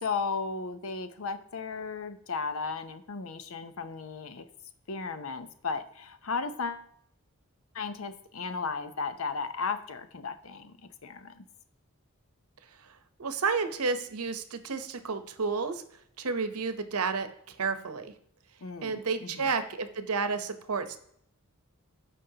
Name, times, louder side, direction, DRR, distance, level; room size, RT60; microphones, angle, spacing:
voice 1, 0.0-4.5 4.9-6.9 7.7-10.8 11.0-11.4 18.6-19.5, left 4 dB, 65° left, 10 dB, 0.7 m, -35 dB
voice 2, 13.2-15.8 16.2-18.1 18.8-21.0, right 4 dB, 90° right, 10 dB, 0.8 m, -31 dB
14.0 x 5.3 x 2.8 m, 0.69 s
head